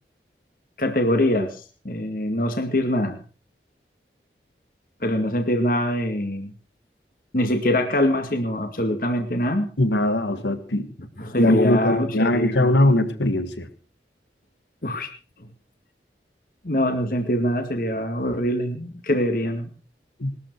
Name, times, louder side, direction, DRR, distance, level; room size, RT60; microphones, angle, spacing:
voice 1, 0.8-3.2 5.0-6.5 7.3-9.7 11.2-12.8 14.8-15.1 15.4-15.5 16.6-19.7, left 1 dB, 50° left, 2.1 m, -24 dB
voice 2, 9.8-10.9 11.4-13.7 20.2-20.3, left 1 dB, 90° left, 1.7 m, -21 dB
20.5 x 13.5 x 4.7 m
head